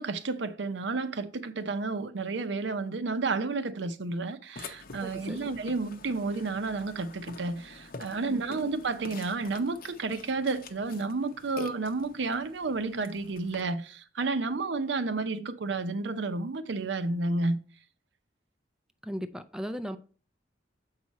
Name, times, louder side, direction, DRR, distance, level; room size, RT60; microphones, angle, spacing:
voice 1, 0.0-17.6, right 3 dB, 70° right, 0.6 m, -31 dB
Burping eructation, 4.6-13.6, left 3 dB, 50° left, 0.7 m, -46 dB
voice 2, 5.0-5.5 8.3-8.6 19.0-20.0, equal, 5° right, 0.3 m, -37 dB
7.4 x 4.8 x 4.1 m
head